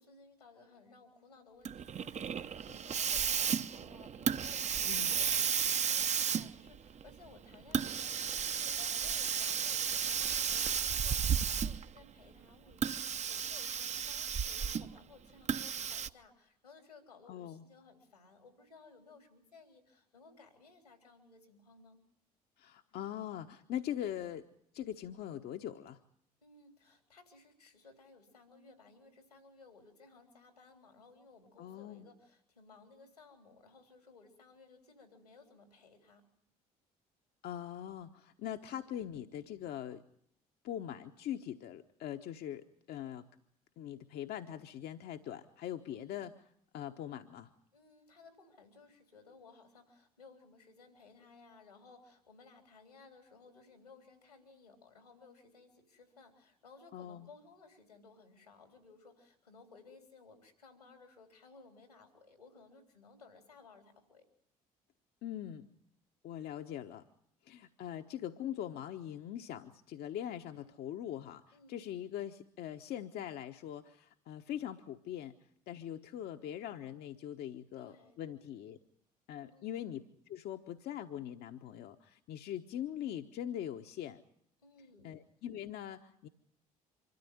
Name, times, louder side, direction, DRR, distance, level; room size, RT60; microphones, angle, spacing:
voice 1, 0.0-22.0 26.4-36.3 45.9-46.3 47.7-64.2 71.5-71.9 77.7-78.2 79.5-79.8 84.6-85.1, left 4 dB, 90° left, 5 dB, 3.6 m, -59 dB
Hiss, 1.6-12.0 12.7-15.0 15.5-16.1, right 7 dB, 35° right, 0.9 m, -33 dB
voice 2, 4.8-5.1 17.3-17.6 22.6-24.5 24.7-26.0 31.6-32.1 37.4-40.0 40.6-43.2 43.8-46.3 46.7-47.5 56.9-57.3 65.2-65.7 66.2-67.0 67.5-75.3 75.7-78.8 79.3-80.0 80.3-84.2 85.0-86.3, left 10 dB, 55° left, 6 dB, 1.1 m, -42 dB
25.5 x 13.5 x 9.4 m, 0.68 s
figure-of-eight pair, 55°, 19 cm